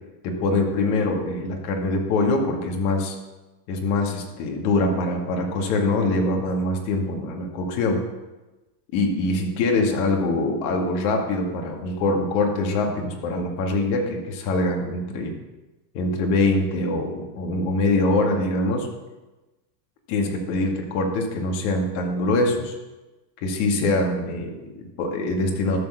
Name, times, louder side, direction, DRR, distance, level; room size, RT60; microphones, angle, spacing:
voice 1, 0.2-3.2 3.7-8.0 8.9-15.3 15.9-18.9 20.1-22.8 23.4-25.8, left 2 dB, 50° left, 2 dB, 2.1 m, -24 dB
12.5 x 4.4 x 6.8 m, 1.1 s
supercardioid pair, 140°, 50 cm